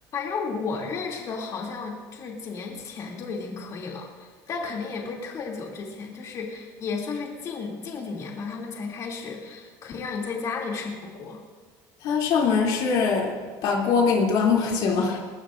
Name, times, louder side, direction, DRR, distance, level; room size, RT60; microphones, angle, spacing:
voice 1, 0.1-11.4, left 4 dB, 45° left, -1 dB, 2.7 m, -33 dB
voice 2, 12.0-13.4 13.6-15.2, left 5 dB, 65° left, -1 dB, 2.9 m, -22 dB
21.0 x 20.0 x 2.6 m, 1.4 s
cardioid pair, 130°, 8 cm